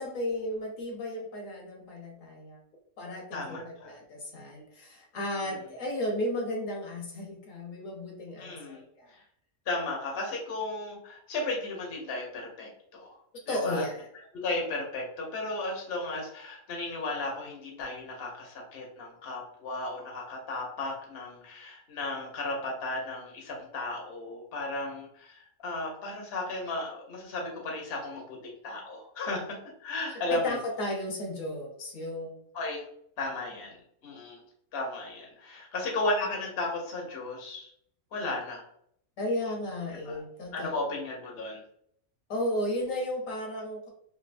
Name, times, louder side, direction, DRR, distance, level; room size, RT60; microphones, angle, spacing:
voice 1, 0.0-2.6 3.0-9.1 13.5-14.1 30.1-32.4 39.2-40.9 42.3-43.9, left 1 dB, 65° left, -1 dB, 1.3 m, -34 dB
voice 2, 3.3-3.9 5.5-5.6 8.4-8.8 9.7-13.1 13.5-13.8 14.3-29.5 29.8-30.6 32.5-32.8 33.2-33.8 34.0-34.4 34.7-37.7 38.1-38.6 40.0-40.2 40.5-41.6, left 2 dB, 50° left, -1 dB, 0.9 m, -35 dB
3.4 x 2.6 x 2.5 m, 0.67 s
omnidirectional pair, 1.5 m